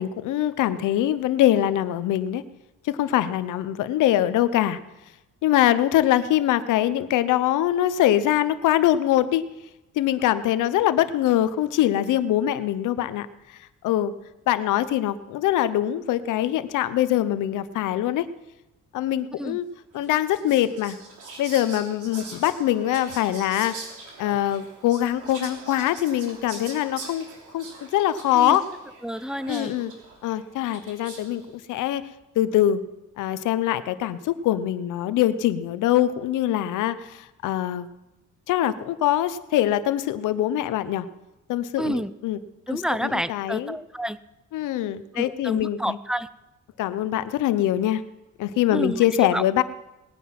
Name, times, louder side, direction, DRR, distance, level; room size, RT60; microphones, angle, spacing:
voice 1, 0.0-2.4 2.8-4.8 5.4-9.4 10.0-14.1 14.5-18.3 18.9-19.6 19.9-21.0 21.4-23.8 24.2-27.3 27.5-28.6 29.5-29.9 30.2-32.0 32.3-32.8 33.2-37.9 38.5-41.1 41.5-42.4 42.7-43.8 44.5-46.0 46.8-48.0 48.4-49.6, left 12 dB, 90° left, 13 dB, 0.9 m, -23 dB
Whispering, 20.0-31.5, right 3 dB, 85° right, 3.5 m, -43 dB
voice 2, 29.0-29.7 41.8-42.1 42.7-44.2 45.1-46.3 48.7-49.0 49.3-49.4, equal, ahead, 15 dB, 0.6 m, -29 dB
19.5 x 9.5 x 6.0 m, 0.97 s
cardioid pair, 90°, 30 cm